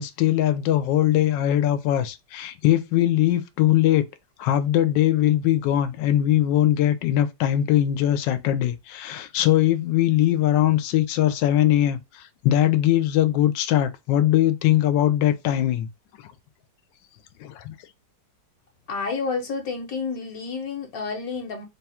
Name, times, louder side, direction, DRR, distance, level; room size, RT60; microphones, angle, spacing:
voice 1, 0.0-4.1 4.4-15.9 17.4-17.8, left 12 dB, 85° left, 1.3 m, -21 dB
voice 2, 18.9-21.6, left 4 dB, 60° left, 1.3 m, -30 dB
3.6 x 2.3 x 4.1 m
omnidirectional pair, 1.9 m